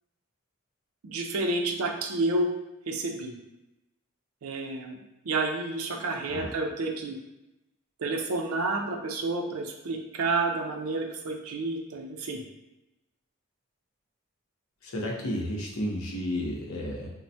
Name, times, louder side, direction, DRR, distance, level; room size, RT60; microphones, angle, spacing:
voice 1, 1.0-2.5 2.9-3.3 4.4-5.0 5.2-7.2 8.0-12.4, right 2 dB, 75° right, 3 dB, 0.4 m, -30 dB
voice 2, 14.8-17.1, left 1 dB, 80° left, -2 dB, 0.7 m, -32 dB
3.2 x 2.0 x 2.7 m, 0.93 s
head